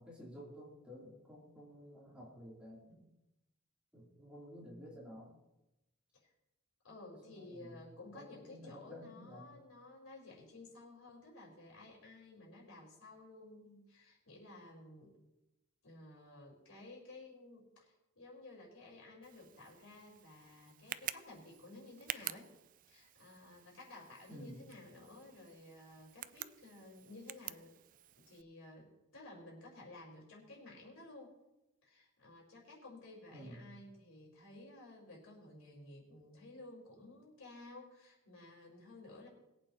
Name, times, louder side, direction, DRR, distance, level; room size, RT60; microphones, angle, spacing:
voice 1, 0.0-3.1 3.9-5.3 7.2-9.5 24.3-24.6 33.3-33.6, equal, 5° right, -5 dB, 3.3 m, -52 dB
voice 2, 6.8-15.2 15.8-22.5 22.9-27.8 28.2-31.3 31.8-39.3, left 2 dB, 90° left, -3 dB, 4.5 m, -54 dB
Tick, 19.2-28.4, right 12 dB, 40° right, 0.3 m, -49 dB
21.5 x 8.6 x 3.0 m, 0.94 s
head